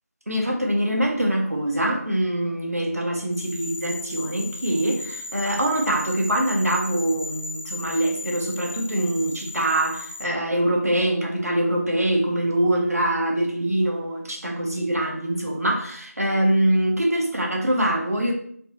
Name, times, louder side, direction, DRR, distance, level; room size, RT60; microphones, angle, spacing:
voice 1, 0.3-18.3, right 1 dB, 65° right, 0 dB, 0.9 m, -24 dB
sound 1, 3.3-10.2, left 2 dB, 45° left, 0.5 m, -36 dB
3.9 x 2.9 x 2.6 m, 0.62 s
figure-of-eight pair, 175°, 9 cm